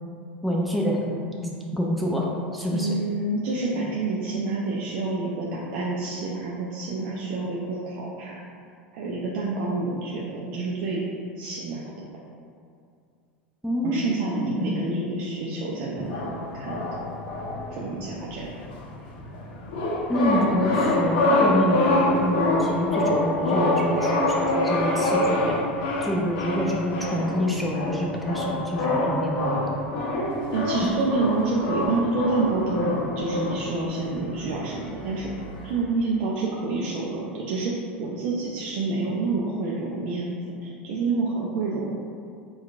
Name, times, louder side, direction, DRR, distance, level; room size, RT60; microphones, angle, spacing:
voice 1, 0.4-1.0 1.4-2.9 13.6-14.9 20.1-25.6 26.0-29.6 30.8-30.9, equal, ahead, -3 dB, 0.4 m, -27 dB
voice 2, 2.7-8.4 8.9-11.0 11.4-11.8 13.8-16.8 17.7-18.5 30.5-35.3 35.6-37.7 38.0-41.9, right 3 dB, 55° right, -5 dB, 0.4 m, -28 dB
sound 1, 16.0-35.8, left 2 dB, 60° left, 0.6 m, -26 dB
4.3 x 2.3 x 2.4 m, 2.4 s
hypercardioid pair, 90°, 6 cm